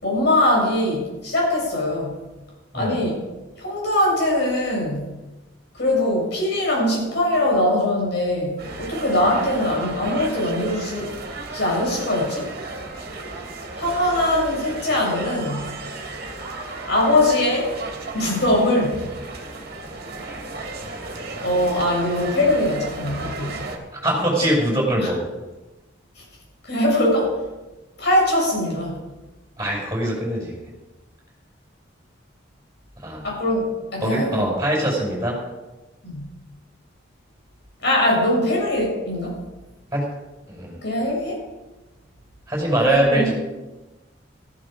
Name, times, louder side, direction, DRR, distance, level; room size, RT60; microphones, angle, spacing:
voice 1, 0.0-2.1 2.7-3.2 3.6-5.1 5.8-11.1 11.5-12.5 13.8-15.7 16.9-17.7 18.1-19.0 21.4-23.6 25.0-25.1 26.6-27.4 28.0-29.0 33.2-34.5 36.0-36.3 37.8-39.4 40.8-41.4 42.8-43.3, left 1 dB, 60° left, -2 dB, 7.0 m, -21 dB
sound 1, 8.6-23.8, right 2 dB, 50° right, 2.5 m, -34 dB
voice 2, 23.9-25.2 29.6-30.7 33.0-33.3 34.0-35.4 39.9-40.0 40.5-40.8 42.5-43.3, right 1 dB, 15° right, -3 dB, 6.0 m, -23 dB
15.0 x 14.5 x 5.1 m, 1.1 s
head